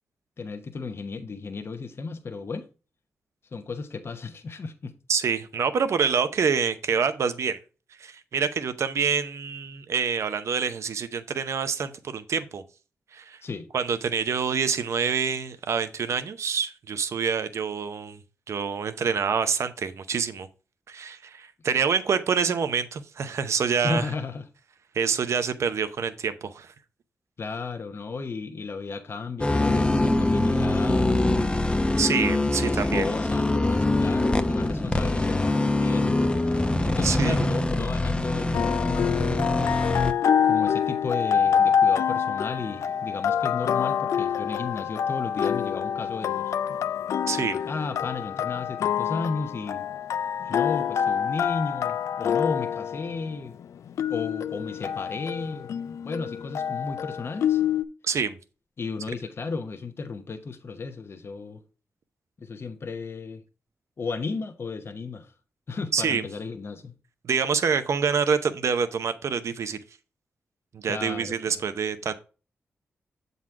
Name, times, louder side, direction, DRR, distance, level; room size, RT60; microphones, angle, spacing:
voice 1, 0.4-2.7 3.5-4.9 13.4-13.7 23.8-24.4 27.4-31.2 32.3-39.2 40.4-46.6 47.6-49.8 50.4-53.5 54.1-57.6 58.8-61.6 62.4-63.4 64.0-65.3 65.7-66.9 70.9-71.6, left 4 dB, 55° left, 0.9 m, -34 dB
voice 2, 5.1-7.6 8.0-12.6 13.1-13.4 13.7-18.2 18.5-20.5 20.9-24.0 24.9-26.7 32.0-33.1 37.0-37.4 47.3-47.6 58.0-58.4 65.9-66.2 67.2-69.8 70.7-72.1, right 6 dB, 70° right, 0.7 m, -26 dB
sound 1, 29.4-40.1, left 2 dB, 20° left, 0.7 m, -24 dB
sound 2, 35.9-38.9, right 1 dB, 30° right, 1.2 m, -37 dB
sound 3, 38.5-57.8, left 8 dB, 80° left, 0.3 m, -26 dB
7.3 x 4.1 x 4.6 m
cardioid pair, 50°, 5 cm